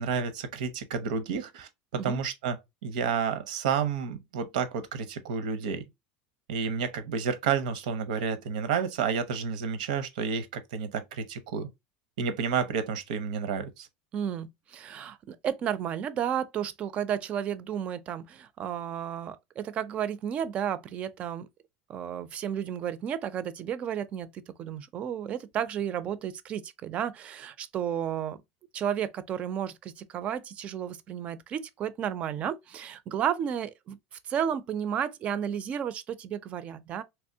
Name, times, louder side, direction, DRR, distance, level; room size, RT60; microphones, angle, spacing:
voice 1, 0.0-5.9 6.5-11.7 12.2-13.9, right 6 dB, 85° right, 0.8 m, -30 dB
voice 2, 14.1-21.5 21.9-28.4 28.7-34.0 34.3-37.0, right 9 dB, 30° right, 0.4 m, -32 dB
3.4 x 2.9 x 2.6 m
supercardioid pair, 155°, 4 cm